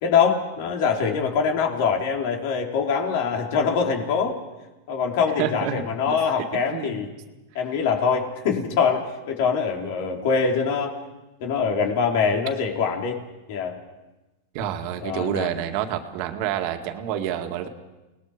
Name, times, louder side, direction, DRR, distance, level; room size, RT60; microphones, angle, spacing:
voice 1, 0.0-4.4 4.9-7.1 7.5-10.9 11.4-13.2 13.5-13.8 15.0-15.5, left 6 dB, 60° left, 2 dB, 4.1 m, -23 dB
voice 2, 5.4-6.1 6.7-7.0 14.5-17.7, right 10 dB, 55° right, 5 dB, 2.1 m, -28 dB
29.5 x 19.5 x 5.1 m, 1.1 s
supercardioid pair, 130°, 0 cm